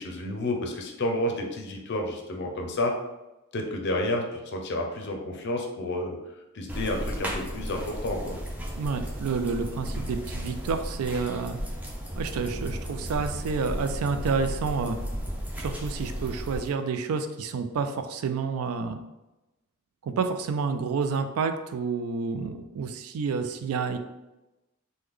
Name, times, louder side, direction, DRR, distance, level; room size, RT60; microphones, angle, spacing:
voice 1, 0.0-2.9 3.5-6.2 6.5-8.4, left 1 dB, 50° left, 2 dB, 0.5 m, -30 dB
sound 1, 6.7-16.7, equal, 5° right, 0.5 m, -34 dB
voice 2, 8.8-11.6 12.2-15.0 15.6-19.0 20.0-24.0, right 5 dB, 80° right, 8 dB, 0.3 m, -29 dB
3.1 x 2.1 x 3.6 m, 1.0 s
head